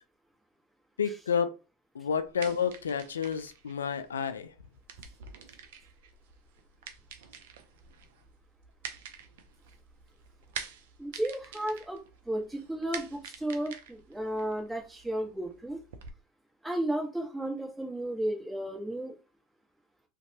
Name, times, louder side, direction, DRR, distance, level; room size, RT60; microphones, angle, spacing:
voice 1, 1.0-1.5 1.9-4.5, left 7 dB, 90° left, 0.3 m, -30 dB
sound 1, 2.1-16.1, right 7 dB, 75° right, 0.4 m, -47 dB
voice 2, 11.0-15.8 16.6-19.1, right 1 dB, 10° right, 1.1 m, -33 dB
2.6 x 2.2 x 2.7 m
hypercardioid pair, 80°, 0 cm